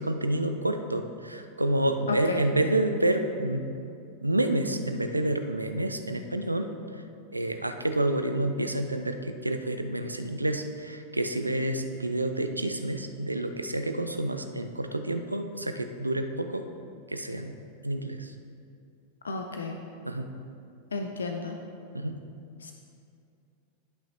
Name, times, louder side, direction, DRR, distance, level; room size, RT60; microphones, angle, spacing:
voice 1, 0.0-3.7 4.2-6.7 7.3-16.6 17.1-17.6 17.8-18.3 20.0-20.3 21.9-22.2, right 1 dB, 85° right, 8 dB, 0.4 m, -29 dB
voice 2, 2.1-2.4 19.2-19.8 20.9-21.6 22.6-22.7, left 3 dB, 70° left, 4 dB, 0.4 m, -32 dB
11.0 x 5.7 x 2.8 m, 2.5 s
figure-of-eight pair, 90°, 0 cm